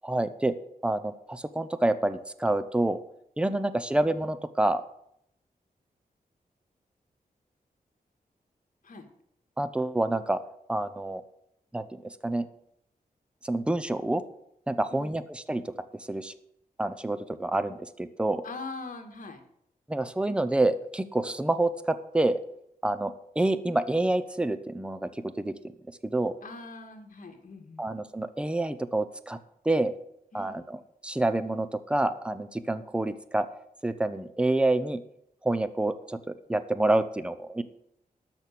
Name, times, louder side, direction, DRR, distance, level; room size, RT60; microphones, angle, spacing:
voice 1, 0.0-0.6 0.8-3.0 3.4-4.8 9.6-10.4 10.7-11.2 11.7-12.5 13.4-14.2 14.7-15.6 16.1-16.3 16.8-18.4 19.9-22.4 22.8-25.5 26.0-26.4 27.8-29.4 29.6-29.9 30.3-33.5 33.8-35.0 35.4-37.6, right 2 dB, 5° right, 12 dB, 0.7 m, -28 dB
voice 2, 18.4-19.4 26.4-27.9 30.3-30.7, left 3 dB, 60° left, 4 dB, 2.0 m, -42 dB
13.0 x 6.2 x 8.5 m, 0.74 s
wide cardioid pair, 140°, 15 cm